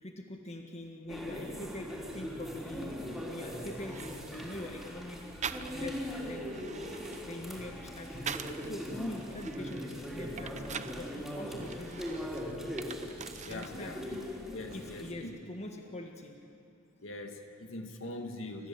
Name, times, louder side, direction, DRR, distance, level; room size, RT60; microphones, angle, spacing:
voice 1, 0.0-3.0 3.3-5.2 5.7-6.9 7.2-12.5 13.5-14.0 14.7-16.4, left 1 dB, 35° left, 3 dB, 1.6 m, -43 dB
sound 1, 1.1-15.1, equal, ahead, 3.5 m, -40 dB
sound 2, 3.8-4.6 5.4-6.0 6.4-8.7 9.2-11.0 11.6-13.8 14.1-14.8, right 7 dB, 35° right, 0.6 m, -43 dB
voice 2, 13.4-14.2 14.5-15.3 17.0-18.7, left 2 dB, 70° left, 4 dB, 2.0 m, -42 dB
28.5 x 14.5 x 7.5 m, 2.4 s
head